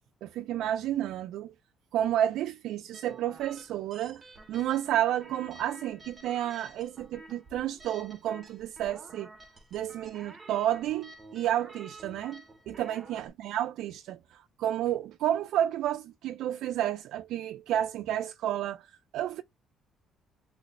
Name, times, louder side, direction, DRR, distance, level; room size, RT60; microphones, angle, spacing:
voice 1, 0.2-1.5 1.9-9.3 9.7-19.4, right 11 dB, 70° right, 0.3 m, -31 dB
sound 1, 2.9-13.3, right 2 dB, 20° right, 0.7 m, -51 dB
3.2 x 3.1 x 2.8 m
cardioid pair, 170°, 0 cm